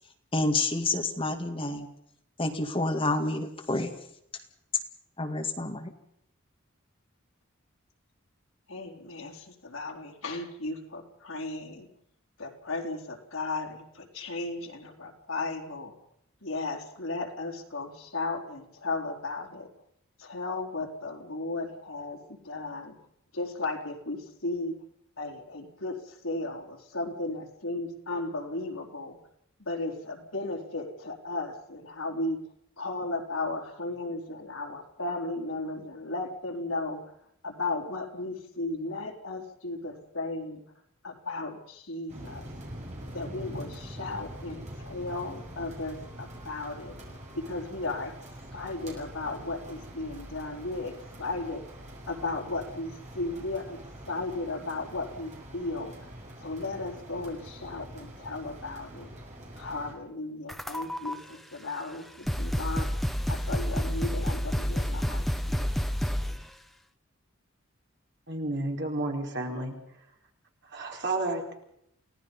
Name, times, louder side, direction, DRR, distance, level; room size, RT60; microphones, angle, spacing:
voice 1, 0.3-1.9 2.4-3.9 5.2-5.9, left 2 dB, 25° left, 5 dB, 2.0 m, -28 dB
voice 2, 8.7-11.9 12.4-15.9 16.4-19.7 20.2-23.0 23.3-24.7 25.2-29.2 29.6-32.5 32.8-37.0 37.4-40.6 41.0-42.5 43.1-51.6 52.1-53.8 54.1-56.1 56.4-59.1 59.6-62.9 63.2-65.7, left 2 dB, 75° left, 1 dB, 4.0 m, -35 dB
sound 1, 42.1-59.9, right 1 dB, 35° right, 6.8 m, -44 dB
sound 2, 60.5-61.1 61.9-62.0 62.3-66.5, equal, ahead, 1.0 m, -29 dB
voice 3, 68.3-69.7 70.7-71.5, right 2 dB, 55° right, 1 dB, 4.7 m, -31 dB
29.5 x 18.0 x 5.5 m, 0.72 s
head